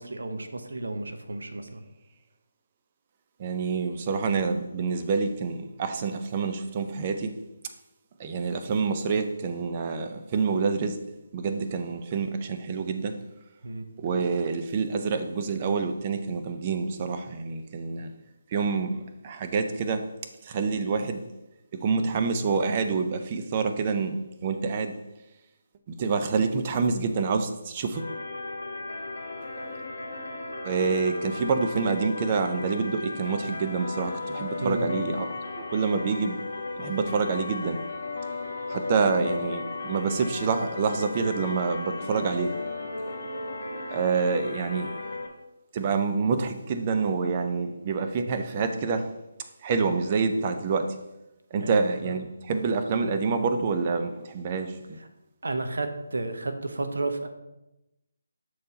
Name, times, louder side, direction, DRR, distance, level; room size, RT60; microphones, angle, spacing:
voice 1, 0.0-1.8 13.6-13.9 34.6-34.9 51.6-52.1 55.4-57.3, right 2 dB, 75° right, 7 dB, 0.8 m, -32 dB
voice 2, 3.4-7.4 8.2-11.0 11.3-13.2 14.0-18.1 18.5-20.1 20.4-21.3 21.7-25.0 25.9-28.0 30.6-35.3 35.7-36.4 36.8-37.8 38.7-42.6 43.9-44.9 45.7-49.1 49.6-51.0 51.5-55.0, right 5 dB, 30° right, 7 dB, 0.6 m, -27 dB
sound 1, 27.9-45.3, left 3 dB, 60° left, 1.3 m, -35 dB
6.6 x 4.4 x 4.0 m, 0.96 s
figure-of-eight pair, 155°, 0 cm